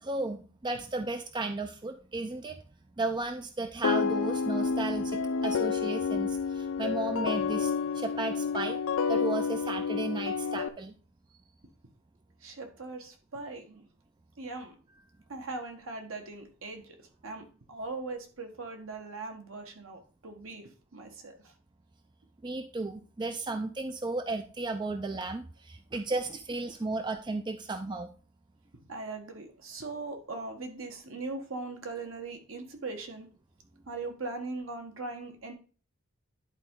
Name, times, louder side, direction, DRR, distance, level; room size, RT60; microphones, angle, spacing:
voice 1, 0.0-2.6 3.0-8.8 9.1-10.9 22.4-28.1, right 3 dB, 20° right, 7 dB, 0.4 m, -34 dB
sound 1, 3.8-10.7, left 5 dB, 70° left, 0.5 m, -29 dB
voice 2, 12.4-13.9 14.4-14.8 15.3-17.0 17.2-21.5 28.9-33.3 33.9-35.5, right 3 dB, 70° right, 4 dB, 1.4 m, -40 dB
10.5 x 4.3 x 3.7 m, 0.37 s
head